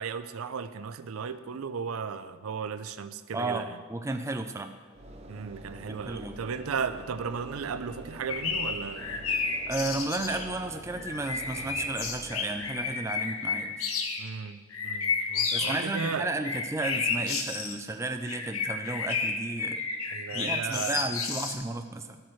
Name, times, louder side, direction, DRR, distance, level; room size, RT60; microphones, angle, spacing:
voice 1, 0.0-3.8 5.3-9.3 14.2-16.3 20.1-21.1, right 6 dB, 75° right, 12 dB, 0.5 m, -35 dB
voice 2, 3.3-4.8 5.9-6.4 9.7-13.8 15.5-19.8 20.3-22.2, right 2 dB, 15° right, 7 dB, 0.4 m, -33 dB
Train / Engine / Alarm, 4.9-13.2, equal, 30° right, 0.8 m, -46 dB
sound 1, 8.3-10.5 10.9-14.3 14.7-17.7 18.2-21.5, left 5 dB, 75° left, 1.0 m, -31 dB
12.5 x 8.6 x 3.2 m, 1.5 s
head